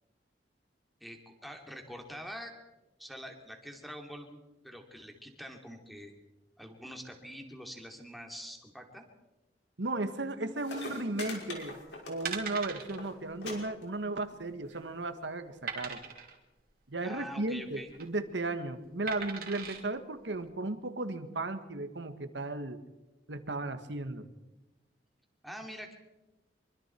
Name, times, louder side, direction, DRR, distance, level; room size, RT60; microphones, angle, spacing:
voice 1, 1.0-2.5 3.0-4.4 4.6-6.1 6.6-9.0 17.0-17.9 25.4-25.9, equal, ahead, 2 dB, 2.7 m, -45 dB
voice 2, 9.8-11.8 12.1-16.0 16.9-22.8 23.3-24.3, right 2 dB, 80° right, 9 dB, 1.7 m, -35 dB
sound 1, 10.3-10.4 10.6-12.5 12.8-13.1 13.4-13.5 13.8-14.3 15.1-15.2, left 2 dB, 75° left, 5.4 m, -42 dB
sound 2, 12.2-13.0 13.3-13.5 13.7-13.8 14.4-14.9 15.7-16.4 17.7-18.1 19.1-19.8 20.4-20.5, right 6 dB, 55° right, 3.0 m, -39 dB
25.0 x 24.0 x 4.6 m, 1.0 s
head